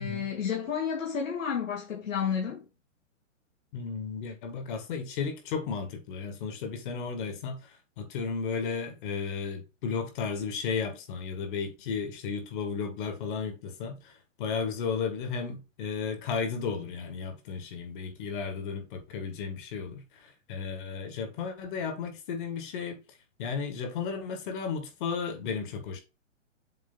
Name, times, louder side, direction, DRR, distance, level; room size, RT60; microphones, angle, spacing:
voice 1, 0.0-2.6, left 7 dB, 85° left, 2.5 m, -31 dB
voice 2, 3.7-23.0 23.4-26.0, left 5 dB, 40° left, 1.8 m, -34 dB
7.5 x 3.6 x 3.9 m
hypercardioid pair, 145°, 38 cm